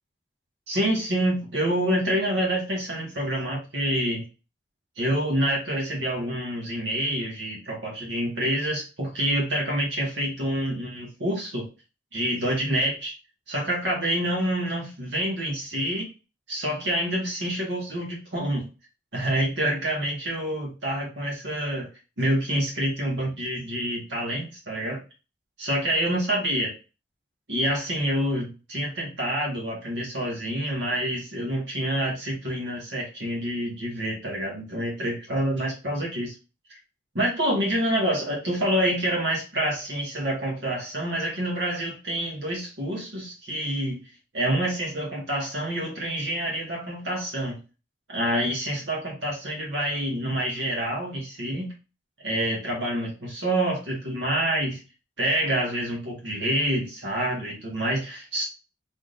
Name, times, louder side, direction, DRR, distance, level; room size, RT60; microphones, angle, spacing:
voice 1, 0.7-4.2 5.0-11.7 12.1-13.1 13.5-16.1 16.5-18.7 19.1-21.9 22.2-25.0 25.6-26.7 27.5-36.3 37.2-44.0 44.3-47.6 48.1-51.7 52.2-54.8 55.2-58.4, right 1 dB, 75° right, -2 dB, 1.7 m, -27 dB
4.9 x 3.8 x 2.7 m, 0.32 s
head